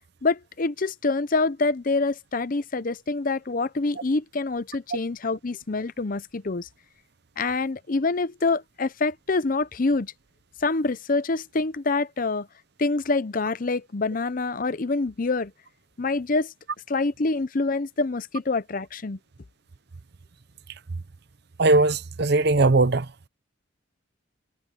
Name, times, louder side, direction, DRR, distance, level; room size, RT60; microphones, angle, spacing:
voice 1, 0.2-6.7 7.4-10.1 10.6-12.5 12.8-15.5 16.0-16.5 16.9-19.2, left 3 dB, 45° left, 0.6 m, -26 dB
voice 2, 21.6-23.1, right 3 dB, 55° right, 0.7 m, -19 dB
head